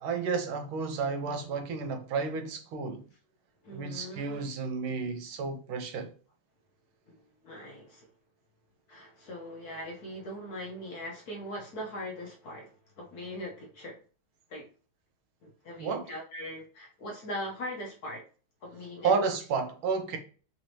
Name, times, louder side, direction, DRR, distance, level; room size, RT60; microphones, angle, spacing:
voice 1, 0.0-3.1 3.7-6.1 15.8-16.1 19.0-20.2, right 5 dB, 80° right, 1.5 m, -31 dB
voice 2, 3.6-4.5 7.1-7.2 7.4-8.1 8.9-14.0 14.5-14.7 15.4-18.2 18.6-19.1, left 1 dB, 60° left, 1.0 m, -40 dB
4.0 x 3.1 x 2.6 m
omnidirectional pair, 2.3 m